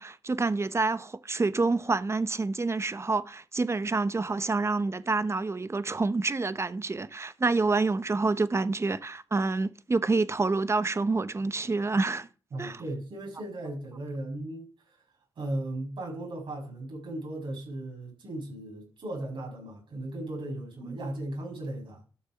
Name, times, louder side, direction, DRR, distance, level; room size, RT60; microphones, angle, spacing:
voice 1, 0.0-12.3 12.6-12.8 20.8-21.0, right 3 dB, 30° right, 0.9 m, -28 dB
voice 2, 12.5-15.0 15.4-22.0, right 1 dB, 75° right, 6.5 m, -37 dB
12.5 x 6.7 x 5.8 m
cardioid pair, 60°, 9 cm